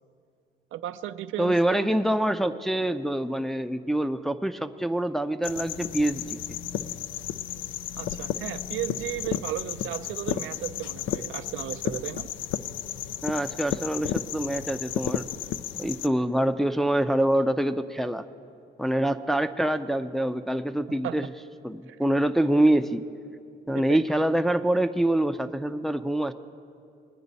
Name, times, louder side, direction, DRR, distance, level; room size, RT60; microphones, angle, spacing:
voice 1, 0.7-1.9 8.0-12.3 21.0-21.1 21.9-22.0 23.9-24.0, right 12 dB, 85° right, 11 dB, 0.5 m, -34 dB
voice 2, 1.4-6.4 13.2-15.3 15.8-18.3 18.8-21.3 21.6-23.0 23.7-26.3, right 1 dB, ahead, 8 dB, 0.5 m, -25 dB
sound 1, 5.4-16.1, left 10 dB, 75° left, 0.4 m, -33 dB
20.5 x 9.5 x 4.1 m, 2.4 s
cardioid pair, 90°, 20 cm